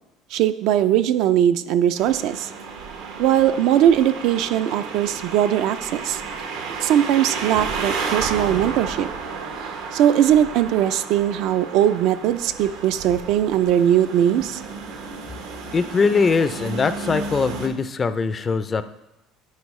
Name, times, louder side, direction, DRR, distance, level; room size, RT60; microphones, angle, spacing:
voice 1, 0.3-2.5 3.2-6.2 6.8-9.1 9.9-14.6, right 10 dB, 70° right, 11 dB, 0.4 m, -20 dB
sound 1, 2.0-17.7, right 5 dB, 85° right, 1.0 m, -32 dB
voice 2, 15.7-18.8, left 5 dB, 30° left, 12 dB, 0.4 m, -21 dB
9.5 x 4.5 x 3.1 m, 0.94 s
supercardioid pair, 110°, 0 cm